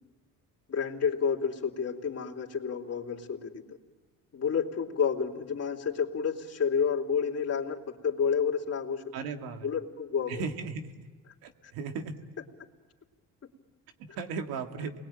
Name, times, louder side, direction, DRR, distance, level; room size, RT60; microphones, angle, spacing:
voice 1, 0.7-3.8 4.3-9.0 9.6-10.4, left 6 dB, 45° left, 0 dB, 3.5 m, -30 dB
voice 2, 9.1-9.7 10.3-11.1 11.4-12.2 14.0-14.9, right 5 dB, 90° right, 5 dB, 2.2 m, -36 dB
29.0 x 21.5 x 9.0 m, 1.4 s
cardioid pair, 85°, 35 cm